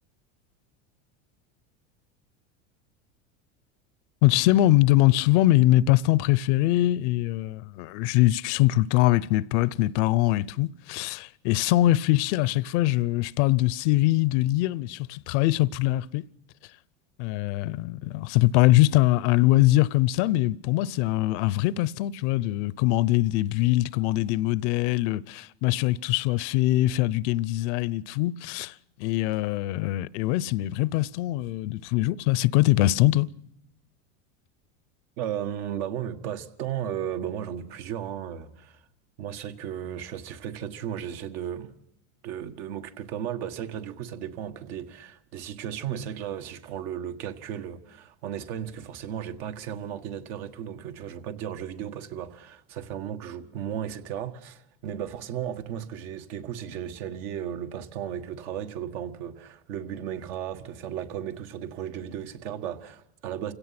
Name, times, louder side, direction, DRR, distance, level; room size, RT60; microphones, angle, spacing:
voice 1, 4.2-16.2 17.2-28.7 29.0-33.3, left 16 dB, 65° left, 0.7 m, -23 dB
voice 2, 35.2-38.8 39.2-41.7 42.2-63.5, right 9 dB, 65° right, 1.9 m, -35 dB
29.0 x 17.0 x 6.0 m
supercardioid pair, 120°, 37 cm